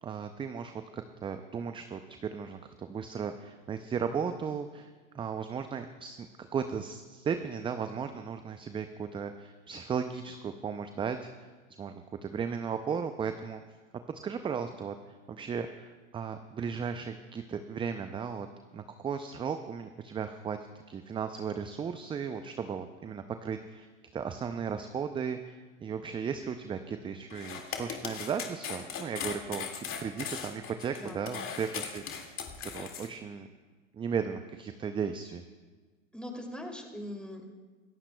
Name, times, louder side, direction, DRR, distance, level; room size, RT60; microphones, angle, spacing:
voice 1, 0.0-11.3 11.8-13.6 14.1-18.5 18.7-20.6 20.9-33.5 33.9-35.4, right 6 dB, 15° right, 8 dB, 0.4 m, -36 dB
sound 1, 27.3-33.1, left 7 dB, 30° left, 2.1 m, -38 dB
voice 2, 31.0-31.5 36.1-37.5, left 1 dB, ahead, 1 dB, 2.7 m, -41 dB
26.5 x 14.0 x 2.3 m, 1.4 s
hypercardioid pair, 100°, 40 cm